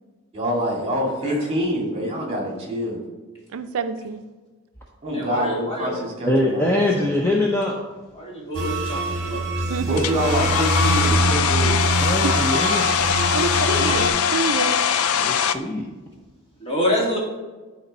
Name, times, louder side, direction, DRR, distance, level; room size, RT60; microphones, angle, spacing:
voice 1, 0.3-3.0 5.0-6.6 7.0-7.3 9.8-11.8, equal, 30° right, -1 dB, 2.1 m, -25 dB
voice 2, 3.5-4.2 9.7-10.1 12.2-12.3 13.3-14.8, right 5 dB, 75° right, 9 dB, 0.4 m, -27 dB
voice 3, 5.1-6.0 8.2-9.0 9.3-9.4 13.5-13.8 16.6-17.2, left 1 dB, 25° left, -4 dB, 2.0 m, -26 dB
voice 4, 6.2-7.8 12.0-12.9 15.2-15.9, left 1 dB, 10° left, -2 dB, 0.7 m, -22 dB
sound 1, 8.5-14.1, right 2 dB, 50° right, 1.1 m, -24 dB
Domestic sounds home sounds, 10.0-15.6, left 8 dB, 85° left, 0.4 m, -22 dB
11.0 x 4.4 x 4.1 m, 1.3 s
head